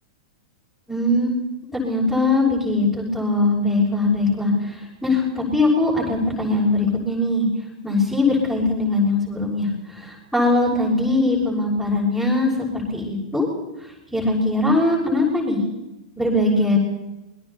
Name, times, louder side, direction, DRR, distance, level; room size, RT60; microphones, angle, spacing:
voice 1, 0.9-1.3 1.7-7.5 7.8-13.5 14.1-15.6 16.2-16.8, left 2 dB, 5° left, -5 dB, 6.4 m, -21 dB
28.0 x 21.5 x 4.3 m, 0.99 s
figure-of-eight pair, 100°, 3 cm